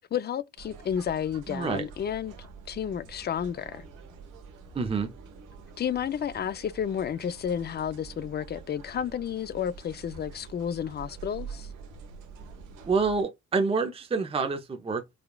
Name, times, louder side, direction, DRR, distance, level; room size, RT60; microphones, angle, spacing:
voice 1, 0.1-2.3 2.7-3.9 5.8-11.7, left 8 dB, 35° left, 0.4 m, -31 dB
sound 1, 0.6-13.2, right 5 dB, 85° right, 1.1 m, -46 dB
voice 2, 1.5-1.8 4.7-5.1 12.8-15.1, right 4 dB, 20° right, 0.6 m, -27 dB
4.9 x 2.3 x 2.2 m
cardioid pair, 90°, 30 cm